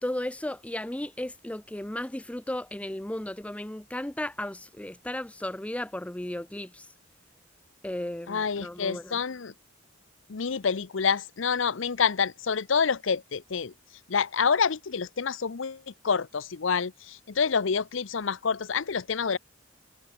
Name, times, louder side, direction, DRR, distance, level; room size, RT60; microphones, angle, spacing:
voice 1, 0.0-6.8 7.8-9.2, left 1 dB, 5° left, 0.5 m, -35 dB
voice 2, 8.3-9.5 10.3-13.7 14.1-19.4, left 6 dB, 70° left, 0.7 m, -27 dB
head